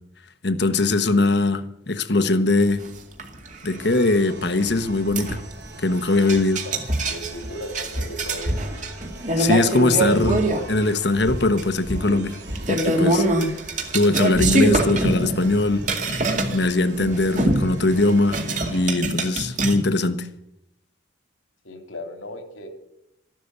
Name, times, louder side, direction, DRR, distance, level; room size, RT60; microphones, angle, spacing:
voice 1, 0.4-2.9 3.6-5.4 5.8-6.6 9.4-12.4 12.7-13.5 13.9-15.8 16.5-18.4 18.7-20.3, left 2 dB, 55° left, 1.2 m, -21 dB
sound 1, 2.9-3.0 3.2-3.8 4.6-4.7 5.2-5.5 6.3-10.7 11.3-11.6 11.9-16.7 17.0-19.8, right 2 dB, 40° right, 2.2 m, -24 dB
sound 2, 3.8-18.9, right 2 dB, 55° right, 3.3 m, -42 dB
voice 2, 7.1-8.5 21.6-22.7, equal, 85° left, 2.9 m, -36 dB
14.0 x 12.0 x 8.1 m
head